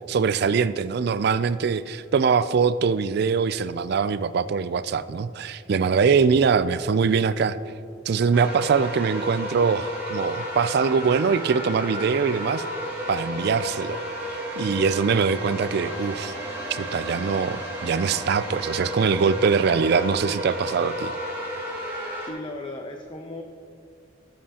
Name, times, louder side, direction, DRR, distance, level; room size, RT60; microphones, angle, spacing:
voice 1, 0.1-7.6 8.1-12.6 13.1-16.3 16.7-21.1, right 5 dB, 55° right, 14 dB, 0.3 m, -23 dB
sound 1, 8.3-22.3, equal, 10° right, 2.0 m, -32 dB
voice 2, 22.2-23.4, left 2 dB, 25° left, 4 dB, 0.5 m, -36 dB
17.5 x 7.5 x 2.9 m, 2.5 s
head